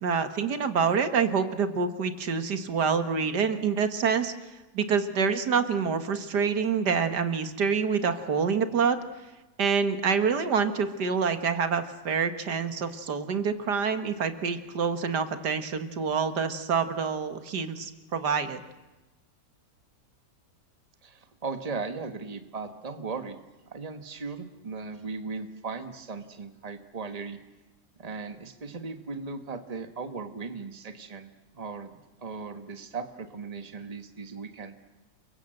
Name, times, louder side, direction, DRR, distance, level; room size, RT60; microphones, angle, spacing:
voice 1, 0.0-4.3 4.7-9.0 9.6-18.6, right 6 dB, 80° right, 9 dB, 2.1 m, -27 dB
voice 2, 21.0-23.4 23.7-27.4 28.0-31.3 31.5-31.9 32.2-34.7, right 4 dB, 25° right, 8 dB, 1.6 m, -37 dB
29.5 x 23.0 x 7.9 m, 1.1 s
omnidirectional pair, 1.8 m